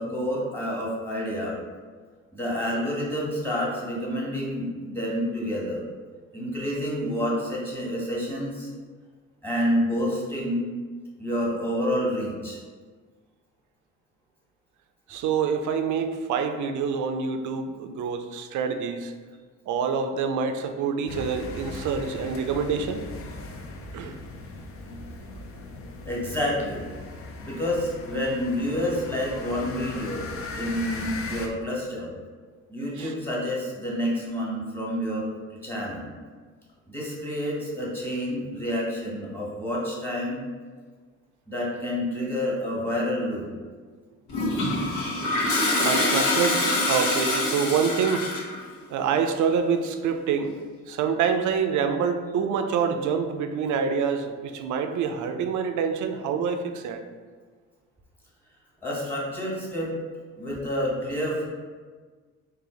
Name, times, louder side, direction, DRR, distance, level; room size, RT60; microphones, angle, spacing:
voice 1, 0.0-1.6 2.3-5.8 6.3-8.7 9.4-10.7 11.2-12.6 26.0-26.8 27.4-30.3 30.5-32.1 32.7-35.3 35.6-36.1 36.9-40.5 41.5-43.5 58.8-59.9 60.4-61.5, equal, 5° left, -5 dB, 1.4 m, -28 dB
voice 2, 15.1-19.1 19.7-23.0 23.9-24.2 33.0-33.1 45.8-48.3 48.9-50.5 50.9-57.0, right 6 dB, 75° right, 7 dB, 0.5 m, -26 dB
sound 1, 21.1-31.5, left 2 dB, 50° left, 0.5 m, -38 dB
Toilet flush, 44.3-48.6, left 2 dB, 85° left, 1.0 m, -25 dB
3.9 x 2.6 x 3.8 m, 1.5 s
cardioid pair, 90°, 30 cm